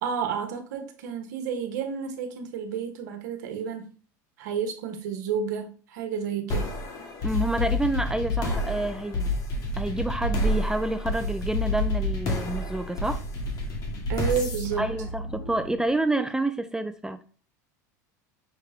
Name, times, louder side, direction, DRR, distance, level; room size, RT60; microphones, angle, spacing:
voice 1, 0.0-3.9 4.4-6.7 14.1-14.9, right 7 dB, 75° right, 1.0 m, -31 dB
sound 1, 6.5-15.9, left 1 dB, 40° left, 1.2 m, -29 dB
voice 2, 7.2-9.3 9.8-13.2 14.8-17.2, right 2 dB, 5° right, 0.3 m, -28 dB
5.8 x 2.1 x 3.5 m
supercardioid pair, 110°, 10 cm